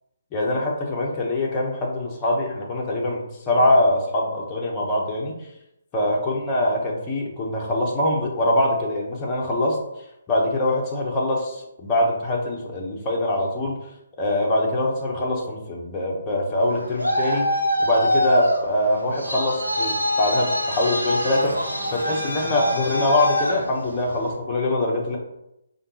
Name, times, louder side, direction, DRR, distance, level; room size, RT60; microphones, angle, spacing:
voice 1, 0.3-5.4 5.9-9.8 10.3-13.8 14.2-17.5 17.8-21.6 21.9-25.2, left 1 dB, 20° left, -2 dB, 0.9 m, -23 dB
Traffic noise roadway noise, 16.6-24.3, equal, 90° right, 1.3 m, -25 dB
5.0 x 2.9 x 2.9 m, 0.84 s
figure-of-eight pair, 140°, 0 cm